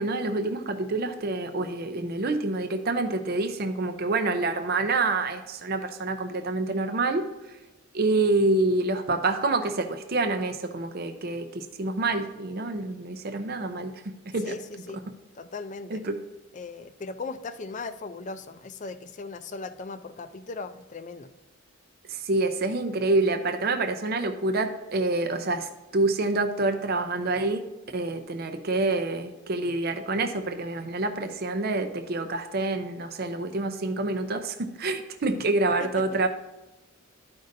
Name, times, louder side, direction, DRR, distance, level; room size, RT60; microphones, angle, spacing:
voice 1, 0.0-7.3 7.9-14.5 15.9-16.2 22.1-27.7 27.9-36.3, right 2 dB, 45° right, 6 dB, 0.5 m, -27 dB
voice 2, 14.4-15.0 15.3-16.0 16.5-21.3 35.8-35.9, left 3 dB, 35° left, 10 dB, 0.4 m, -38 dB
12.5 x 5.2 x 2.6 m, 1.1 s
head